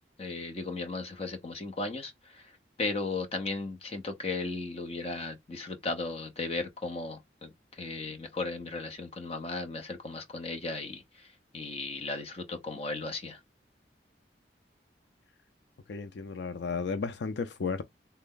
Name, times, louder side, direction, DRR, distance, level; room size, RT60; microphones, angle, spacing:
voice 1, 0.2-2.4 2.8-7.5 7.8-11.3 11.5-13.4, left 3 dB, 35° left, 0.8 m, -36 dB
voice 2, 15.9-17.8, left 5 dB, 75° left, 0.4 m, -33 dB
3.3 x 2.2 x 3.7 m
head